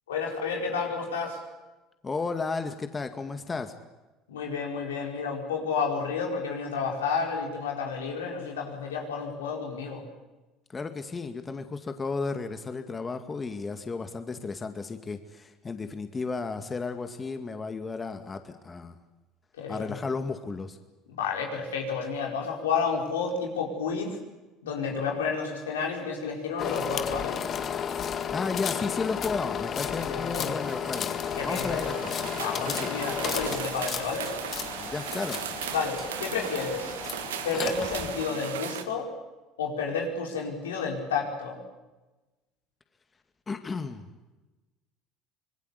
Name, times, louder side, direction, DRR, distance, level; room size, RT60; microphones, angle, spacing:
voice 1, 0.1-1.4 4.3-10.0 19.5-20.0 21.1-24.2 24.6-27.4 29.9-30.5 31.4-32.0 32.4-34.3 35.7-36.9 37.4-39.1 39.6-41.6, left 5 dB, 90° left, 1 dB, 4.8 m, -31 dB
voice 2, 2.0-3.7 10.7-19.0 19.7-20.8 28.3-31.1 31.4-32.0 32.7-32.9 34.8-35.4 43.5-44.1, left 4 dB, 25° left, 7 dB, 2.1 m, -33 dB
sound 1, 26.6-38.2, left 7 dB, 45° left, 1.9 m, -33 dB
sound 2, 29.4-29.5 30.0-38.8, right 10 dB, 85° right, 1.6 m, -38 dB
25.5 x 21.0 x 8.3 m, 1.1 s
hypercardioid pair, 75°, 0 cm